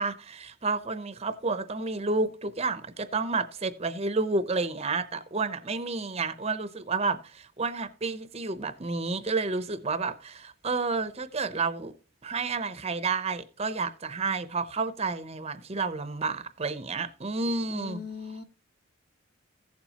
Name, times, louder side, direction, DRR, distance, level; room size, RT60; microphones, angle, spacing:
voice 1, 0.0-11.9 12.2-18.0, right 3 dB, 30° right, 0.6 m, -30 dB
voice 2, 17.7-18.4, left 6 dB, 50° left, 1.0 m, -39 dB
15.5 x 7.1 x 2.8 m
head